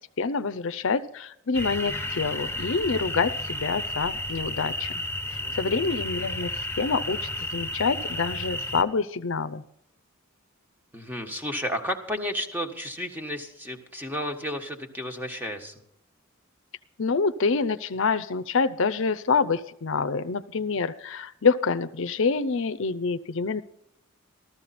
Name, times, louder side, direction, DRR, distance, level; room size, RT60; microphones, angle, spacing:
voice 1, 0.2-5.0 5.3-9.6 17.0-23.6, left 4 dB, 65° left, 11 dB, 0.6 m, -27 dB
sound 1, 1.5-8.8, left 1 dB, 10° left, 1.4 m, -32 dB
voice 2, 5.4-5.8 10.9-15.7, equal, 10° right, 4 dB, 1.5 m, -32 dB
14.0 x 14.0 x 4.2 m, 0.75 s
head